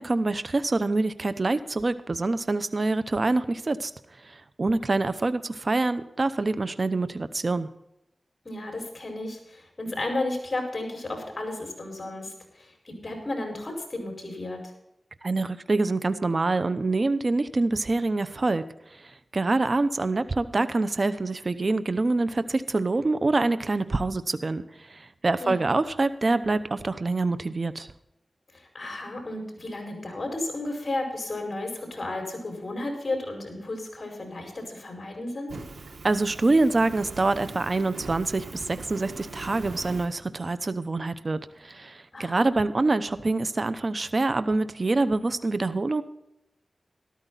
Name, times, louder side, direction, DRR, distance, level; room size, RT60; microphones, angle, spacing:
voice 1, 0.0-3.9 4.2-7.7 15.2-18.6 18.9-27.9 36.0-46.0, right 3 dB, 50° right, 12 dB, 0.8 m, -26 dB
voice 2, 8.5-14.7 25.4-25.7 28.5-35.6 42.1-42.5, left 2 dB, 45° left, 3 dB, 5.2 m, -33 dB
Fire, 35.5-40.1, right 3 dB, 90° right, 1.6 m, -41 dB
13.5 x 13.0 x 4.1 m, 0.85 s
cardioid pair, 55°, 0 cm